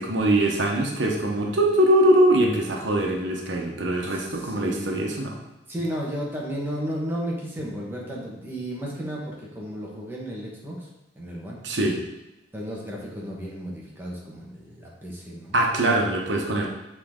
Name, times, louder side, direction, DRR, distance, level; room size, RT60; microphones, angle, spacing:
voice 1, 0.0-5.3 11.6-12.0 15.5-16.7, right 1 dB, 85° right, 0 dB, 1.0 m, -22 dB
voice 2, 1.1-1.6 4.1-5.1 5.7-10.8 11.2-11.6 12.5-15.6 16.4-16.7, equal, 10° right, -4 dB, 1.4 m, -34 dB
7.5 x 4.0 x 3.7 m, 0.95 s
head